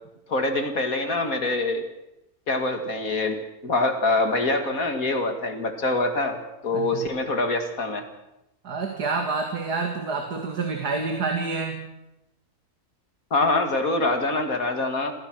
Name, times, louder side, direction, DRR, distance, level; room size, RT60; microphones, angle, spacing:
voice 1, 0.3-1.8 2.5-8.0 13.3-15.1, left 2 dB, 60° left, 6 dB, 2.6 m, -25 dB
voice 2, 6.7-7.1 8.6-11.9, right 4 dB, 85° right, 3 dB, 2.7 m, -28 dB
27.0 x 16.0 x 6.2 m, 0.90 s
omnidirectional pair, 1.7 m